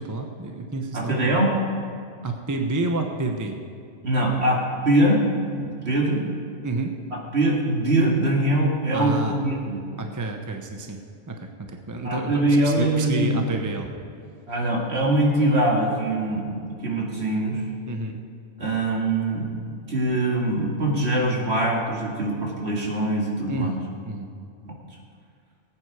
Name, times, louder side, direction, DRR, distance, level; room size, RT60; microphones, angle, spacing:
voice 1, 0.0-1.4 2.2-3.6 6.6-6.9 8.9-9.4 10.0-11.0 11.3-13.9 17.8-18.2 23.5-24.3, right 2 dB, 15° right, 3 dB, 0.7 m, -29 dB
voice 2, 0.9-1.5 4.0-5.2 5.5-6.3 7.3-9.8 12.0-13.4 14.5-17.6 18.6-23.7 24.6-24.7, right 1 dB, 50° right, -2 dB, 2.4 m, -23 dB
18.5 x 8.9 x 4.8 m, 2.3 s
omnidirectional pair, 1.4 m